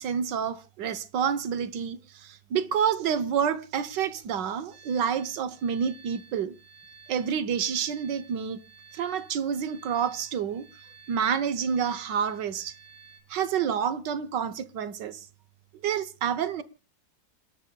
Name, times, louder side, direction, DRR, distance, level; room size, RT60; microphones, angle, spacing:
voice 1, 0.0-6.5 7.1-8.6 8.9-10.7 11.1-12.7 13.3-15.3 15.8-16.6, right 7 dB, 75° right, 1.6 m, -28 dB
sound 1, 4.7-13.2, right 6 dB, 60° right, 5.2 m, -54 dB
29.5 x 12.5 x 2.3 m
omnidirectional pair, 1.9 m